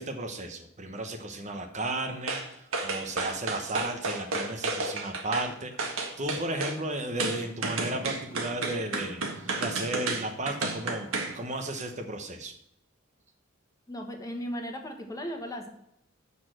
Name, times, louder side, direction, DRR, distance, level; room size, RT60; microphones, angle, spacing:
voice 1, 0.0-12.6, right 2 dB, 35° right, 5 dB, 0.9 m, -34 dB
sound 1, 2.3-2.5 2.7-5.5 5.8-6.8 7.2-11.3 11.7-11.8, right 3 dB, 80° right, 1.7 m, -31 dB
voice 2, 13.9-15.7, equal, 15° left, 3 dB, 1.4 m, -36 dB
7.0 x 6.4 x 7.6 m, 0.77 s
head